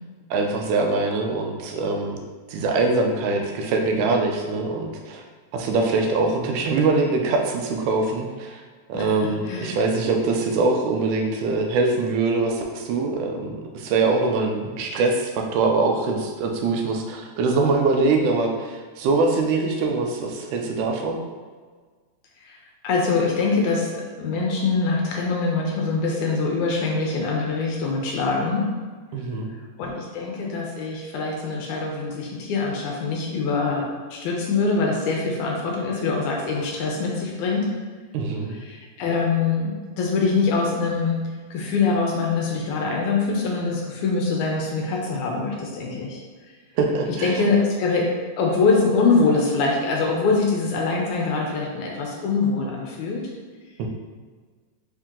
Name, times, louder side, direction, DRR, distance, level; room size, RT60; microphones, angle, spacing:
voice 1, 0.3-2.2 2.5-5.2 5.5-8.6 8.9-21.2 29.1-29.5 38.1-38.6 46.8-47.5 53.8-53.9, right 3 dB, 85° right, 3 dB, 2.1 m, -23 dB
voice 2, 9.5-9.8 22.4-22.6 22.8-28.6 29.8-33.8 34.1-37.7 38.7-41.2 41.5-46.2 47.2-48.0 48.4-53.2, left 4 dB, 80° left, -1 dB, 1.9 m, -23 dB
5.1 x 2.8 x 3.6 m, 1.5 s
omnidirectional pair, 3.5 m